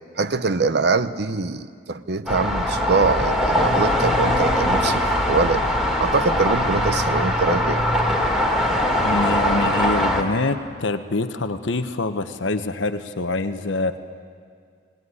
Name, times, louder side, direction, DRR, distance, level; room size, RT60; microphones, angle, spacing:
voice 1, 0.2-5.0 5.3-5.6 6.0-7.8, right 4 dB, 60° right, 12 dB, 0.7 m, -23 dB
sound 1, 2.3-10.2, left 1 dB, ahead, 2.1 m, -21 dB
voice 2, 9.0-14.0, left 2 dB, 90° left, 9 dB, 1.0 m, -25 dB
19.0 x 19.0 x 9.6 m, 2.1 s
head